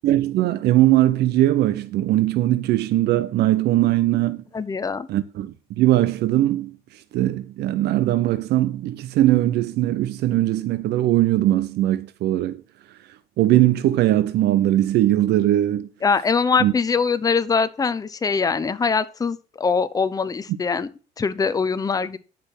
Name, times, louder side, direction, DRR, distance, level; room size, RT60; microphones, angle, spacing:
voice 1, 0.0-4.4 5.1-6.8 7.1-12.6 13.4-15.9 16.6-16.7, right 14 dB, 75° right, 0.8 m, -20 dB
voice 2, 4.5-5.1 16.0-20.9 21.2-22.2, left 5 dB, 20° left, 0.8 m, -22 dB
10.5 x 6.1 x 6.1 m
cardioid pair, 110°, 17 cm